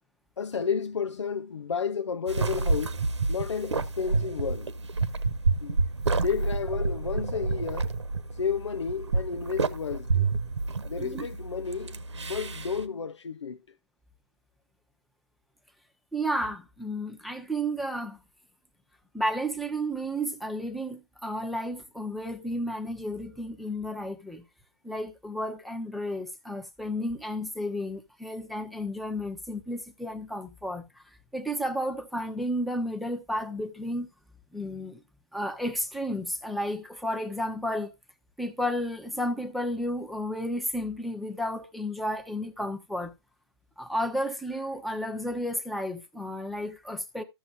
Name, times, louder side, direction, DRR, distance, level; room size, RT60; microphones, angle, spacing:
voice 1, 0.4-3.0 3.3-4.7 5.6-5.8 6.1-7.9 8.4-10.3 10.8-13.6, left 6 dB, 90° left, 0.6 m, -32 dB
sound 1, 2.3-12.8, right 3 dB, 85° right, 1.2 m, -29 dB
voice 2, 16.1-18.2 19.1-24.4 24.8-30.9 31.3-34.1 34.5-35.0 35.3-37.9 38.4-43.1 43.8-47.2, equal, ahead, 0.9 m, -32 dB
14.0 x 7.0 x 2.6 m
hypercardioid pair, 140°, 15 cm